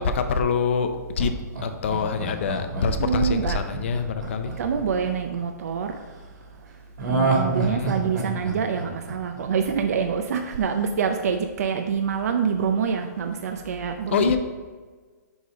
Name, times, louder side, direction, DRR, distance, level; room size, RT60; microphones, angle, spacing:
voice 1, 0.0-1.3 1.6-4.5 7.6-8.0 14.1-14.4, left 5 dB, 40° left, 8 dB, 0.5 m, -25 dB
Laughter, 1.2-5.4 7.0-10.0 10.3-10.4, right 3 dB, 80° right, 1.9 m, -28 dB
voice 2, 3.0-3.6 4.6-6.0 7.1-14.4, right 6 dB, 60° right, 5 dB, 0.5 m, -26 dB
5.5 x 4.7 x 5.0 m, 1.4 s
hypercardioid pair, 170°, 10 cm